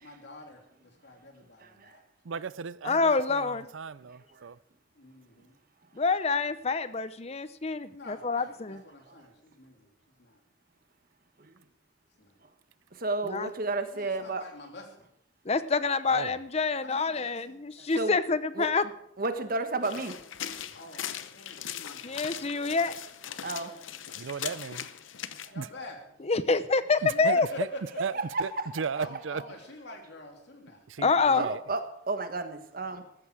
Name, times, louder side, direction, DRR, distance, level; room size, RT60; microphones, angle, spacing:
voice 1, 0.0-2.0 4.9-5.6 7.9-10.4 12.2-12.4 13.9-15.1 16.8-17.6 20.7-22.2 23.4-23.8 25.5-26.0 27.0-28.2 29.0-30.9, left 2 dB, 60° left, 2 dB, 3.1 m, -47 dB
voice 2, 2.2-4.6 16.1-16.4 24.2-24.9 25.6-25.7 27.0-27.7 28.0-29.4 30.9-31.6, right 5 dB, 85° right, 18 dB, 0.5 m, -35 dB
voice 3, 2.8-3.7 5.9-8.8 13.3-13.5 15.4-18.9 22.0-23.0 26.3-27.5 31.0-31.5, left 4 dB, 35° left, 14 dB, 0.7 m, -27 dB
voice 4, 13.0-14.4 18.0-18.2 18.6-18.7 19.2-20.2 23.4-23.7 25.4-25.5 28.3-28.4 31.3-33.0, right 3 dB, 50° right, 8 dB, 1.3 m, -31 dB
sound 1, 19.8-25.5, left 9 dB, 90° left, 0.8 m, -39 dB
14.5 x 14.0 x 4.8 m, 0.73 s
head